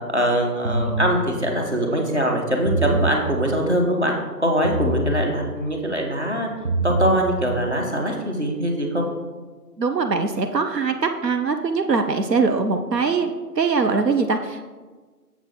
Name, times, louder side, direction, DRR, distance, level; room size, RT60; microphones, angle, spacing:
voice 1, 0.1-4.1 4.4-6.5 6.8-9.1, equal, 45° right, 0 dB, 1.1 m, -22 dB
sound 1, 0.6-1.1 2.5-3.2 4.6-5.2 6.5-7.2, right 2 dB, 65° right, 1.4 m, -23 dB
voice 2, 9.8-14.7, right 4 dB, 85° right, 6 dB, 0.7 m, -22 dB
7.2 x 6.2 x 3.7 m, 1.4 s
figure-of-eight pair, 175°, 48 cm